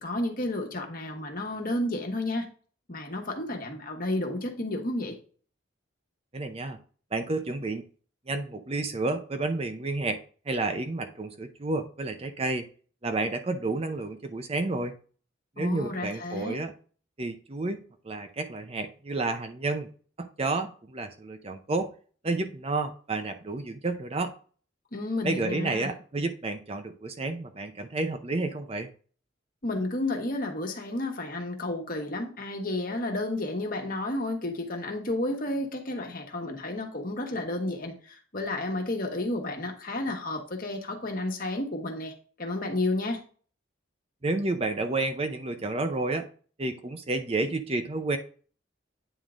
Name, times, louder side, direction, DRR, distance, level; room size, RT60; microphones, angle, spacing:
voice 1, 0.0-2.5 2.9-5.2 15.6-16.6 24.9-25.9 29.6-42.1 42.4-43.2, left 2 dB, 45° left, 1.4 m, -31 dB
voice 2, 6.3-6.8 7.1-7.8 8.3-10.2 10.5-12.6 13.0-14.9 15.6-16.7 17.2-19.9 20.2-21.9 22.2-24.3 25.2-28.9 44.2-46.3 46.6-48.2, right 2 dB, 30° right, 0.6 m, -30 dB
9.1 x 3.7 x 3.7 m
head